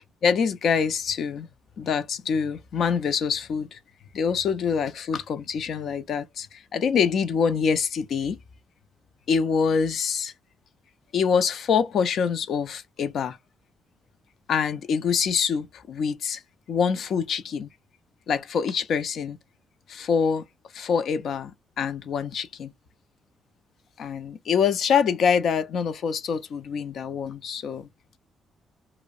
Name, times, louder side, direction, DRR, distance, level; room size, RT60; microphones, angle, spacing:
voice 1, 0.2-1.5 1.8-3.8 4.1-8.4 9.3-10.3 11.1-13.4 14.5-16.4 16.7-17.7 18.3-19.4 19.9-20.4 20.7-22.7 24.0-27.9, left 6 dB, 65° left, 0.4 m, -25 dB
2.6 x 2.0 x 2.3 m
cardioid pair, 90°, 0 cm